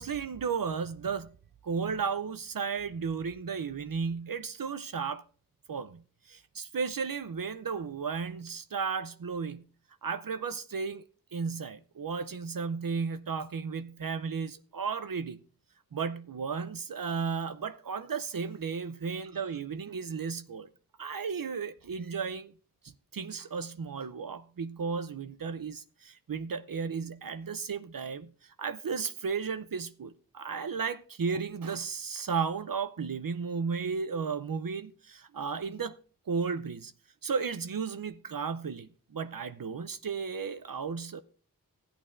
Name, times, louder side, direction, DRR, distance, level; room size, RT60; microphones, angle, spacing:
voice 1, 0.0-1.3 1.6-5.2 5.7-9.7 10.0-11.0 11.3-15.4 15.9-20.7 21.0-22.5 22.8-35.9 36.3-36.9 37.2-41.2, right 5 dB, 65° right, 0.6 m, -34 dB
15.5 x 8.6 x 2.5 m
wide cardioid pair, 60°, 36 cm